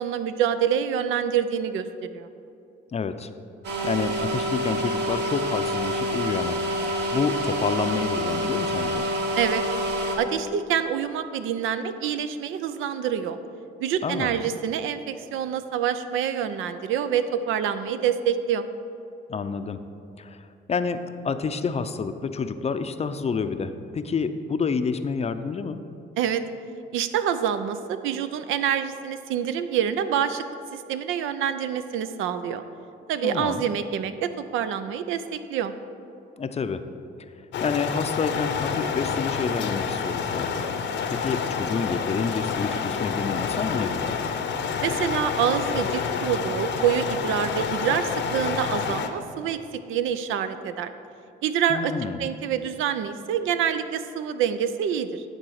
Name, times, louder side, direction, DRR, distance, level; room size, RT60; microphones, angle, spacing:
voice 1, 0.0-1.9 2.1-2.3 9.4-9.6 10.2-13.4 13.8-18.7 26.2-26.4 26.9-30.4 30.7-32.6 33.1-35.7 44.8-49.6 49.9-50.9 51.4-51.9 52.2-55.2, right 8 dB, 90° right, 11 dB, 0.5 m, -26 dB
voice 2, 2.9-3.3 3.8-6.6 6.9-9.1 14.0-14.3 19.3-19.8 20.2-25.8 33.2-33.7 36.4-36.8 37.6-40.7 41.1-44.2 51.7-52.2, left 5 dB, 30° left, 10 dB, 0.5 m, -28 dB
sound 1, 3.6-10.2, equal, 60° right, 1.5 m, -27 dB
sound 2, 37.5-49.1, left 6 dB, 65° left, 0.7 m, -28 dB
10.5 x 3.9 x 6.4 m, 2.7 s
cardioid pair, 90°, 20 cm